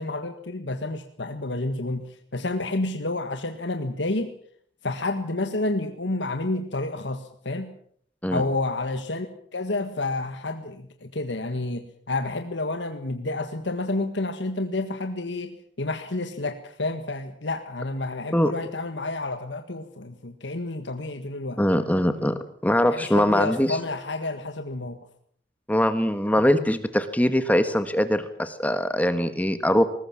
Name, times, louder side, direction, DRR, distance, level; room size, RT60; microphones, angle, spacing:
voice 1, 0.0-4.3 4.8-7.7 8.3-9.3 9.5-21.6 22.8-25.0, left 2 dB, 80° left, 7 dB, 1.7 m, -30 dB
voice 2, 21.6-23.8 25.7-29.9, equal, 10° left, 10 dB, 1.4 m, -22 dB
20.5 x 19.5 x 7.4 m, 0.63 s
head